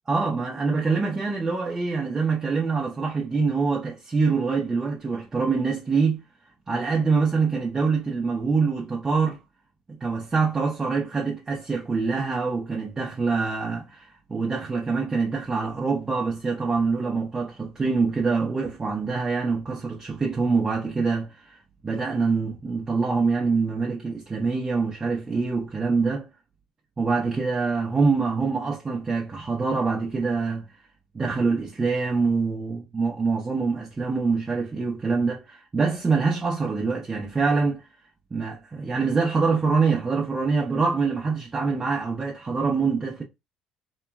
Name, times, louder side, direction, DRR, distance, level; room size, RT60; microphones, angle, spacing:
voice 1, 0.1-6.2 6.7-9.4 9.9-26.3 27.0-30.7 31.1-37.8 38.3-43.2, right 4 dB, 25° right, 0.6 m, -25 dB
3.0 x 2.2 x 2.2 m
supercardioid pair, 85°, 2 cm